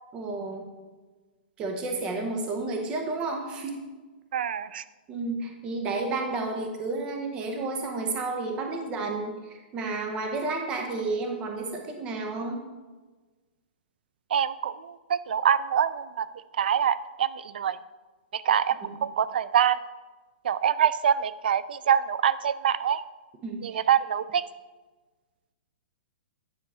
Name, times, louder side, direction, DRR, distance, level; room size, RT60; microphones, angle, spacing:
voice 1, 0.1-0.7 1.6-3.8 5.1-12.6 18.8-19.0 23.4-23.8, right 3 dB, 15° right, 4 dB, 0.7 m, -31 dB
voice 2, 4.3-4.8 14.3-16.3 16.6-17.8 18.3-19.8 20.4-23.0 23.6-24.4, right 9 dB, 65° right, 16 dB, 0.4 m, -25 dB
9.6 x 4.7 x 4.2 m, 1.3 s
hypercardioid pair, 170°, 6 cm